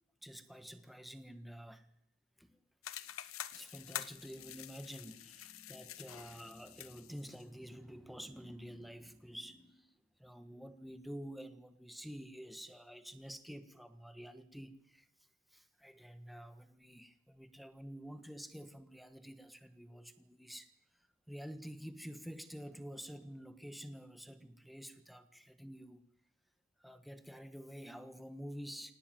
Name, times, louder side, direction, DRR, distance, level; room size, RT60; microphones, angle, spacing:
voice 1, 0.2-1.9 2.4-2.6 3.3-9.9 10.2-15.1 15.5-20.7 21.3-26.0 26.8-28.9, equal, ahead, 1.4 m, -49 dB
sound 1, 2.8-7.4, left 11 dB, 85° left, 1.1 m, -47 dB
24.0 x 18.5 x 9.1 m
head